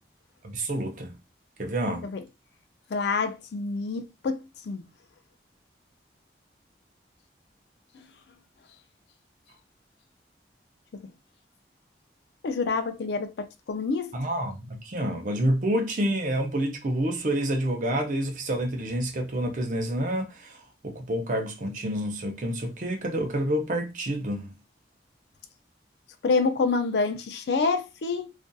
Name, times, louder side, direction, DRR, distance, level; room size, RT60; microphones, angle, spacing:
voice 1, 0.4-1.1 1.6-2.1 14.1-20.6 20.8-24.5, right 1 dB, 45° right, 0.6 m, -28 dB
voice 2, 2.9-4.8 7.9-8.1 12.4-14.1 26.2-28.3, left 4 dB, 70° left, 0.4 m, -27 dB
2.6 x 2.4 x 2.2 m
head